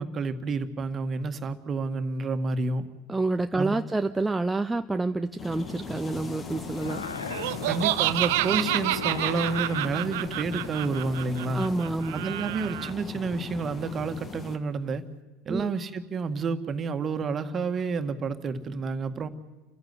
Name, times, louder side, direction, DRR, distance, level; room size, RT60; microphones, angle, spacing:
voice 1, 0.0-2.9 3.6-3.8 7.7-11.6 12.1-15.1 15.5-19.3, right 4 dB, 35° right, 9 dB, 1.9 m, -29 dB
voice 2, 3.1-7.0 11.5-12.3 15.5-15.7, right 2 dB, 10° right, 8 dB, 0.7 m, -28 dB
sound 1, 5.4-14.6, left 4 dB, 30° left, 2.2 m, -39 dB
sound 2, 5.5-11.1, left 5 dB, 85° left, 1.3 m, -39 dB
Laughter, 7.3-12.9, right 18 dB, 65° right, 0.7 m, -29 dB
29.5 x 15.0 x 9.8 m, 1.2 s
figure-of-eight pair, 75°, 0 cm